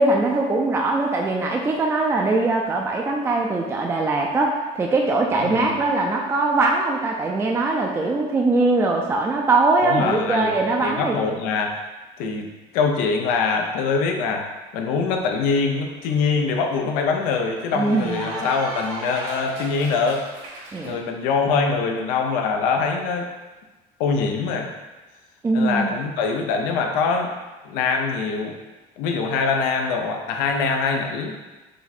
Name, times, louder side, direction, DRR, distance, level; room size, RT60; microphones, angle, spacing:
voice 1, 0.0-11.2 17.7-18.2 20.7-21.0 25.4-25.9, right 3 dB, 20° right, 0 dB, 0.4 m, -21 dB
voice 2, 5.4-5.8 9.8-10.5 10.8-11.8 12.2-14.5 14.7-20.2 20.8-23.3 24.0-24.7 25.5-27.3 27.6-28.5 29.0-31.3, left 4 dB, 85° left, 3 dB, 0.6 m, -23 dB
Cheering / Applause, 15.5-20.9, right 1 dB, 65° right, 1.5 m, -36 dB
4.8 x 2.2 x 4.2 m, 1.2 s
cardioid pair, 120°, 14 cm